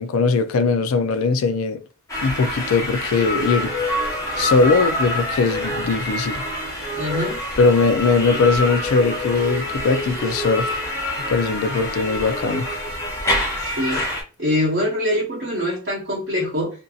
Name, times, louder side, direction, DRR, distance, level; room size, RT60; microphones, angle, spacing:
voice 1, 0.0-1.8 2.2-3.7 4.4-6.4 7.6-10.8 11.3-12.7, left 4 dB, 80° left, 0.4 m, -20 dB
sound 1, 2.1-14.2, left 1 dB, 15° left, 0.8 m, -26 dB
voice 2, 6.9-7.4 13.6-14.0 14.4-16.7, left 1 dB, 55° right, 0.9 m, -24 dB
2.6 x 2.5 x 2.3 m
head